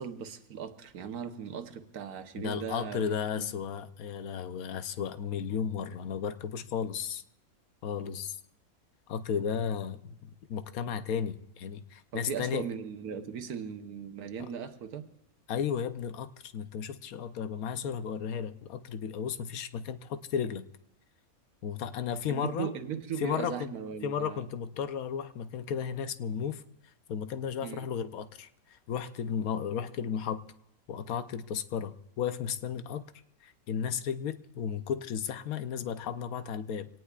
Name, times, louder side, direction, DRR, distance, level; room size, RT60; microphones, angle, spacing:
voice 1, 0.0-3.0 3.4-3.5 12.1-15.0 22.3-24.5 27.6-27.9, right 7 dB, 90° right, 8 dB, 1.5 m, -38 dB
voice 2, 2.4-7.2 7.8-8.4 9.1-12.7 14.4-14.5 15.5-20.7 21.6-22.7 23.2-23.7 24.0-26.6 27.1-30.4 30.9-33.0 33.4-36.9, left 7 dB, 75° left, 11 dB, 1.1 m, -34 dB
24.5 x 18.0 x 2.4 m, 0.73 s
omnidirectional pair, 1.5 m